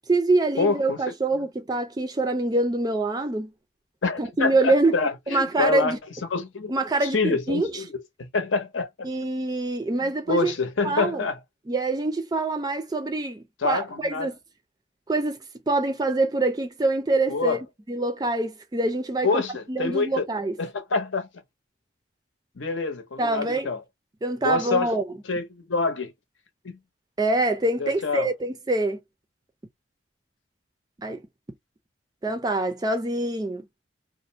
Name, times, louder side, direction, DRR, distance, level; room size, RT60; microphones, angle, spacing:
voice 1, 0.1-3.5 4.2-5.0 5.3-6.0 6.7-7.7 9.0-10.5 10.8-11.2 11.7-14.4 15.1-15.4 15.7-17.6 17.9-19.4 19.7-20.6 23.2-23.7 24.2-25.0 27.2-29.0 31.0-31.2 32.2-33.7, right 2 dB, 20° right, 0.3 m, -25 dB
voice 2, 0.6-1.0 4.0-6.0 6.3-6.7 7.1-7.8 8.2-9.1 10.0-11.4 13.6-14.3 17.3-17.6 19.2-20.2 20.6-21.3 22.6-23.8 24.4-24.9 25.3-26.1 26.6-26.8 27.8-28.3, left 4 dB, 85° left, 0.7 m, -26 dB
2.5 x 2.0 x 2.6 m
head